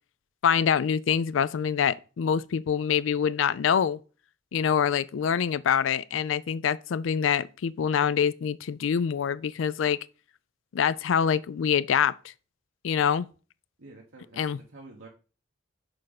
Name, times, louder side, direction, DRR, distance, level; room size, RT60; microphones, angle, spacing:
voice 1, 0.4-4.0 4.5-10.0 10.7-12.1 12.8-13.3 14.4-14.6, left 7 dB, 80° left, 0.4 m, -25 dB
voice 2, 13.8-15.1, right 2 dB, 85° right, 1.1 m, -49 dB
6.6 x 4.9 x 4.0 m
head